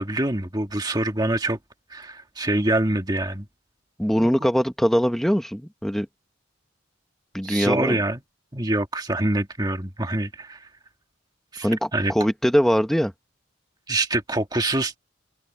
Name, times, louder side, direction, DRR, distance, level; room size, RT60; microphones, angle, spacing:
voice 1, 0.0-1.6 1.9-3.5 4.2-4.3 7.4-8.2 8.5-10.7 11.5-12.1 13.9-15.0, right 1 dB, 20° right, 1.7 m, -25 dB
voice 2, 4.0-6.1 7.3-8.0 11.6-13.1, equal, ahead, 1.1 m, -22 dB
head